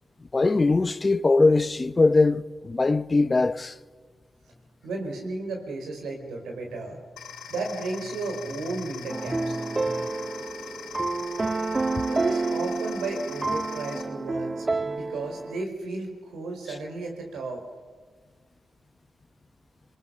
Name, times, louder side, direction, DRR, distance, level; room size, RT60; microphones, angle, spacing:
voice 1, 0.3-3.7, left 3 dB, 35° left, 1.0 m, -21 dB
sound 1, 2.7-2.9 3.2-3.3 3.5-3.9 4.5-4.8 5.5-5.6 6.2-10.1, left 1 dB, 15° left, 3.3 m, -45 dB
voice 2, 4.8-7.0 7.5-9.6 12.1-17.6, right 3 dB, 85° right, 4.8 m, -33 dB
sound 2, 7.2-14.0, left 7 dB, 85° left, 2.3 m, -42 dB
sound 3, 9.1-15.6, right 3 dB, 35° right, 0.7 m, -29 dB
26.5 x 19.0 x 6.4 m
supercardioid pair, 45°, 0 cm